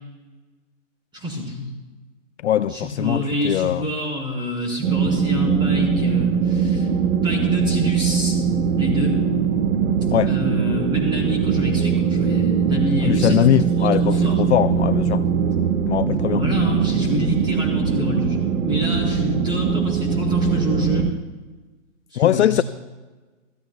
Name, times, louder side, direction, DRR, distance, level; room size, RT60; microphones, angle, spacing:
voice 1, 1.1-1.7 2.7-6.9 7.2-8.4 8.8-9.1 10.3-13.4 13.7-14.4 16.2-21.1 22.1-22.6, left 1 dB, 10° right, 4.3 m, -27 dB
voice 2, 2.4-3.9 10.1-10.3 13.0-15.2 15.9-16.4 22.2-22.6, left 11 dB, 60° left, 0.5 m, -20 dB
sound 1, 4.8-21.1, right 6 dB, 90° right, 1.2 m, -21 dB
26.0 x 15.0 x 2.3 m
hypercardioid pair, 140°, 39 cm